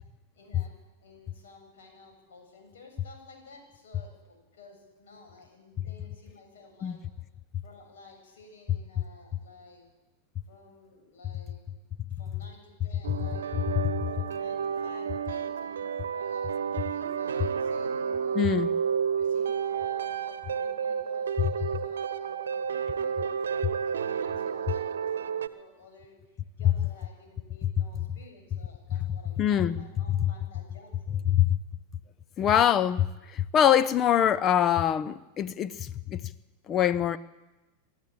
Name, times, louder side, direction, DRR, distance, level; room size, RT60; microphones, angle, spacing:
voice 1, 0.3-0.7 1.0-7.0 7.6-9.8 10.5-13.5 14.0-18.6 19.1-26.2 26.6-31.4, left 3 dB, 60° left, 7.5 m, -53 dB
sound 1, 13.0-25.5, right 7 dB, 65° right, 1.0 m, -31 dB
voice 2, 18.3-18.7 29.4-29.8 31.3-31.6 32.4-36.3 36.7-37.2, left 10 dB, 30° left, 0.7 m, -24 dB
28.0 x 13.0 x 8.7 m
figure-of-eight pair, 90°, 0 cm